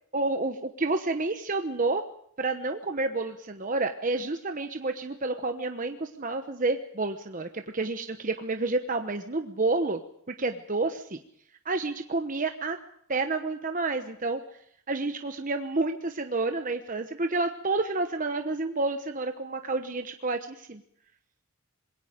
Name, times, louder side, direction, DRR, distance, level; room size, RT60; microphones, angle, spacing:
voice 1, 0.1-2.0 2.4-10.0 10.4-11.2 11.6-12.8 13.1-14.4 14.9-20.8, right 3 dB, 35° right, 6 dB, 1.0 m, -29 dB
26.0 x 22.0 x 5.2 m, 0.68 s
head